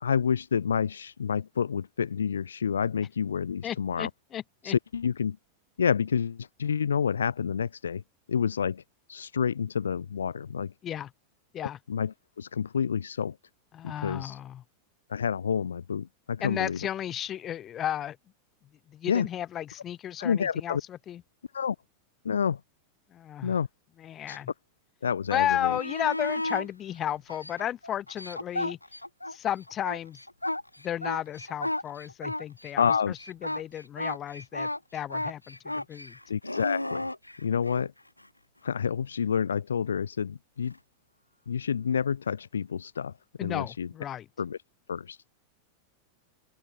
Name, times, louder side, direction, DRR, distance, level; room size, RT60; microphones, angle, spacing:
voice 1, 0.0-4.1 4.6-5.4 5.8-8.0 8.3-8.8 9.1-10.7 11.6-13.4 13.8-14.4 15.1-16.8 19.1-19.3 20.2-20.8 21.5-21.8 22.2-22.6 23.4-23.7 24.3-24.4 25.0-25.8 32.8-33.1 36.3-37.1 37.4-37.9 38.6-40.7 41.5-43.1 43.4-43.9 44.4-44.6 44.9-45.2, left 7 dB, 70° left, 0.4 m, -29 dB
voice 2, 3.6-4.7 10.8-11.1 11.5-11.8 13.7-14.6 16.4-18.2 18.9-21.2 23.1-23.5 24.0-24.5 25.3-28.8 29.3-30.2 30.8-36.2 43.4-44.2, left 11 dB, 30° left, 1.5 m, -33 dB
sound 1, 25.4-26.7 27.3-29.4 29.7-37.9 40.6-40.8, left 1 dB, 85° left, 1.6 m, -34 dB
open air
figure-of-eight pair, 90°, 0 cm